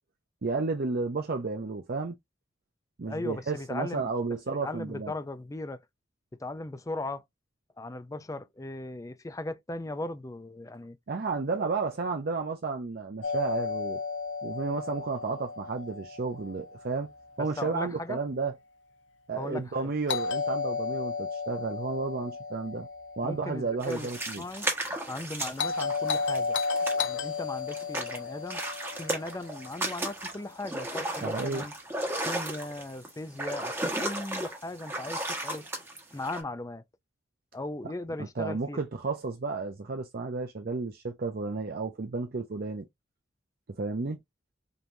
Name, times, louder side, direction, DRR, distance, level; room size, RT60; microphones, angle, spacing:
voice 1, 0.4-2.1 3.0-5.1 11.1-14.0 14.4-17.1 17.4-18.5 19.3-22.9 23.2-24.4 31.2-31.6 38.4-42.9 43.8-44.2, right 4 dB, 55° right, 0.6 m, -32 dB
voice 2, 3.1-4.1 4.5-5.8 6.4-7.2 7.8-11.0 11.6-11.7 17.4-18.2 19.4-19.9 23.2-24.7 25.1-26.6 26.9-28.6 29.0-31.7 32.3-35.7 36.1-36.8 37.5-38.8, left 2 dB, 15° left, 0.5 m, -38 dB
Doorbell, 13.2-17.2 20.1-24.3 25.6-30.0, left 4 dB, 70° left, 0.7 m, -33 dB
sound 1, 23.8-27.4 27.7-36.4, right 1 dB, 10° right, 1.4 m, -34 dB
5.3 x 3.0 x 2.6 m
head